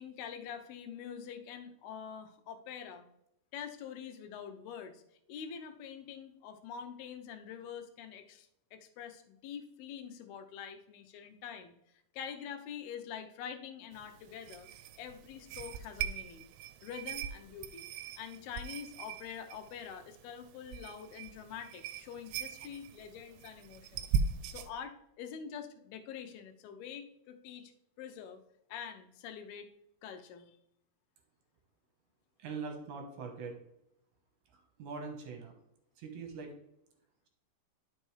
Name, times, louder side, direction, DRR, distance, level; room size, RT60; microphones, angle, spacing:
voice 1, 0.0-3.1 3.5-5.0 5.3-11.8 12.1-14.7 15.0-16.5 16.8-17.9 18.2-24.1 24.5-27.7 28.0-28.4 28.7-29.7 30.0-30.6, left 7 dB, 80° left, 6 dB, 2.7 m, -45 dB
sound 1, 13.9-24.7, right 6 dB, 85° right, 2.5 m, -40 dB
voice 2, 32.4-33.6 34.5-35.5 36.0-36.5, right 4 dB, 65° right, 3 dB, 2.2 m, -42 dB
11.5 x 5.3 x 3.2 m, 0.79 s
omnidirectional pair, 4.6 m